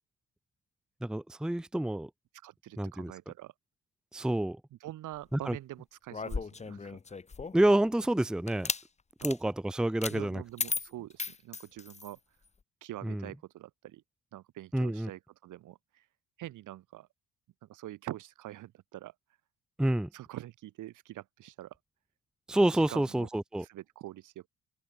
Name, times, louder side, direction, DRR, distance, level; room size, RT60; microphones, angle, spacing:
voice 1, 1.0-2.1 2.8-3.1 4.1-4.6 5.3-5.6 7.5-8.7 9.2-10.4 13.0-13.2 14.7-15.1 19.8-20.1 22.5-23.6, right 1 dB, ahead, 0.7 m, -28 dB
voice 2, 2.4-3.5 4.7-7.0 9.2-9.3 10.1-12.2 12.8-14.0 14.3-16.1 16.4-17.1 17.6-19.1 20.1-21.8 22.7-23.3 23.6-24.5, right 14 dB, 85° right, 3.7 m, -45 dB
sound 1, 6.1-7.7 8.5-8.8 9.2-9.4 10.0-10.2 10.6-12.1, left 4 dB, 20° left, 0.9 m, -36 dB
cardioid pair, 90°, 30 cm